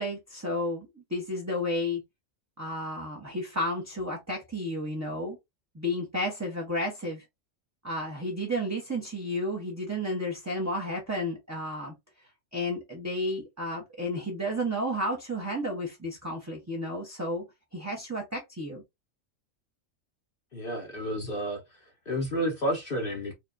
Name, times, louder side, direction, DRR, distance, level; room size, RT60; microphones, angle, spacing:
voice 1, 0.0-2.0 2.6-5.4 5.7-7.2 7.8-11.9 12.5-17.4 17.7-18.8, left 1 dB, 15° right, 0.7 m, -32 dB
voice 2, 20.5-21.6 22.1-23.3, equal, 50° left, 0.9 m, -30 dB
4.5 x 2.3 x 2.5 m
omnidirectional pair, 1.4 m